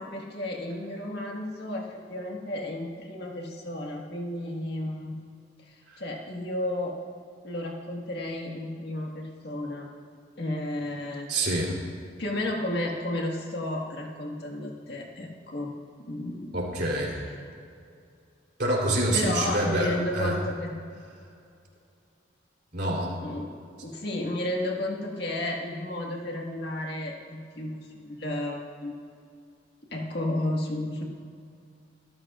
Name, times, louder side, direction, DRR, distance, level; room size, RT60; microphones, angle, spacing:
voice 1, 0.0-5.2 5.7-6.9 7.4-9.9 10.4-11.3 12.2-15.7 16.1-16.6 19.1-20.7 23.2-23.4 23.8-28.9 29.9-31.0, left 1 dB, 60° left, 0 dB, 1.7 m, -32 dB
voice 2, 11.3-11.8 16.5-17.2 18.6-20.4 22.7-23.1, right 1 dB, 55° right, -2 dB, 3.5 m, -26 dB
25.0 x 13.0 x 2.5 m, 2.4 s
head